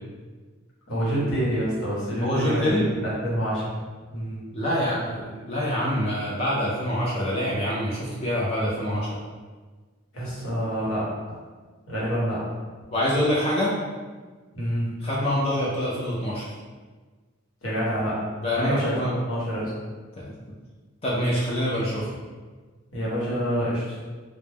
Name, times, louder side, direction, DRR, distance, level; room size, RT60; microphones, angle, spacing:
voice 1, 0.9-3.6 4.1-4.4 10.1-11.4 11.9-12.5 14.5-14.9 17.6-18.2 18.6-19.7 22.9-24.0, equal, 75° left, -8 dB, 1.0 m, -27 dB
voice 2, 2.2-2.8 4.5-9.1 12.9-13.7 15.0-16.5 18.4-19.1 20.2-20.3 21.0-22.2, equal, 30° left, -6 dB, 0.4 m, -25 dB
2.2 x 2.0 x 3.2 m, 1.4 s
head